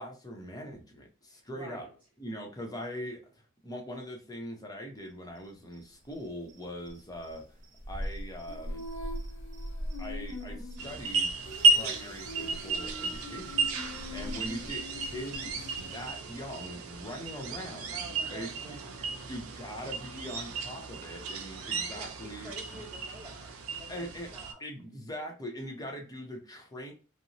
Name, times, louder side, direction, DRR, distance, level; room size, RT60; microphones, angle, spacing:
voice 1, 0.0-1.9 2.2-7.4 7.9-8.8 10.0-11.3 11.7-18.0 18.3-22.5 23.9-24.3 24.6-26.9, equal, 20° left, 2 dB, 0.6 m, -42 dB
voice 2, 1.3-1.9 17.9-19.0 21.9-24.6, right 1 dB, 5° right, -6 dB, 0.9 m, -49 dB
sound 1, 5.4-16.1, equal, 40° right, 0.6 m, -43 dB
Female singing, 8.5-16.2, left 3 dB, 65° left, 0.9 m, -45 dB
sound 2, 10.8-24.5, right 3 dB, 90° right, 0.5 m, -33 dB
2.9 x 2.0 x 2.6 m, 0.37 s
head